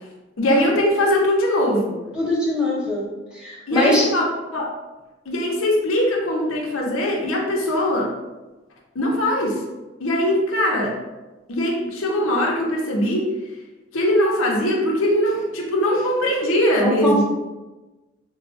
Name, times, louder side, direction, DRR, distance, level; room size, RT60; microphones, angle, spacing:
voice 1, 0.4-2.0 3.7-4.3 4.5-4.7 5.3-8.1 8.9-9.6 10.0-11.0 11.5-13.3 13.9-17.2, left 1 dB, 85° left, -2 dB, 0.7 m, -21 dB
voice 2, 2.1-3.1 3.3-4.1 16.8-17.2, left 1 dB, 5° right, -6 dB, 0.7 m, -21 dB
4.2 x 2.3 x 2.4 m, 1.1 s
head